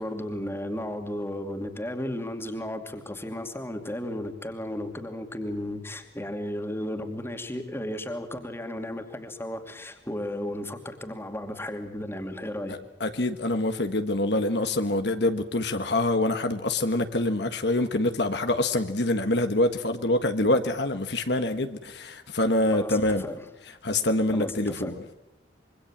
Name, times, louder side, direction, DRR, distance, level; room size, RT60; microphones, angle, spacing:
voice 1, 0.0-12.7 22.7-23.5 24.3-25.0, left 1 dB, 15° left, 2.5 m, -34 dB
voice 2, 13.0-23.2 23.8-24.9, left 2 dB, 65° left, 1.6 m, -25 dB
26.0 x 24.0 x 7.5 m
head